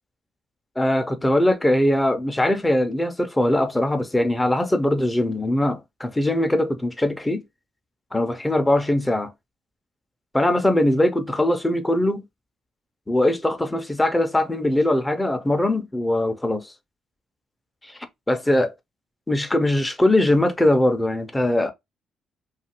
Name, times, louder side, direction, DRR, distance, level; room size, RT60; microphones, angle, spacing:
voice 1, 0.8-7.4 8.1-9.3 10.3-12.2 13.1-16.7 17.8-18.0 18.3-18.7 19.3-21.7, left 1 dB, 10° left, 0.6 m, -21 dB
2.7 x 2.4 x 2.8 m
cardioid pair, 90°, 0 cm